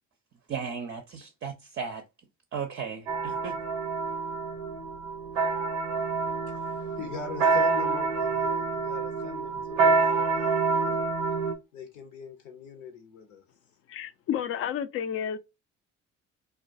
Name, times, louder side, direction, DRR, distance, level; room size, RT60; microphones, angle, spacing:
voice 1, 0.5-2.0 2.5-3.6, right 6 dB, 35° right, 0.5 m, -35 dB
sound 1, 3.1-11.5, right 4 dB, 85° right, 0.6 m, -27 dB
voice 2, 6.0-11.0 11.7-13.4, left 5 dB, 80° left, 0.8 m, -42 dB
voice 3, 13.9-15.4, left 9 dB, 40° left, 0.4 m, -31 dB
2.3 x 2.1 x 2.5 m
hypercardioid pair, 50°, 37 cm